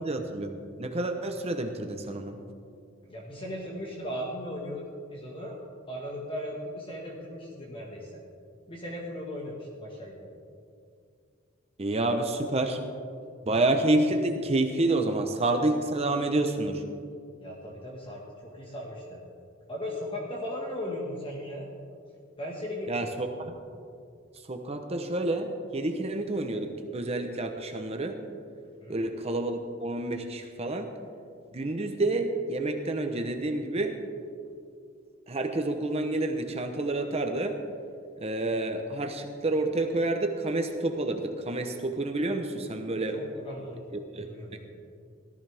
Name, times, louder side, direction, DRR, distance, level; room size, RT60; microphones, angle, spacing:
voice 1, 0.0-2.4 11.8-12.8 13.4-16.8 22.9-23.5 24.5-28.2 28.9-30.9 31.5-34.0 35.3-37.6 38.2-43.2 43.9-44.3, right 2 dB, 30° right, 5 dB, 0.8 m, -29 dB
voice 2, 3.0-4.8 5.1-5.6 5.9-8.2 8.7-10.3 17.4-19.2 19.7-21.7 22.4-22.9 28.8-29.0 43.1-43.8 44.2-44.7, left 1 dB, 25° left, -2 dB, 1.6 m, -37 dB
17.5 x 13.5 x 3.5 m, 2.3 s
head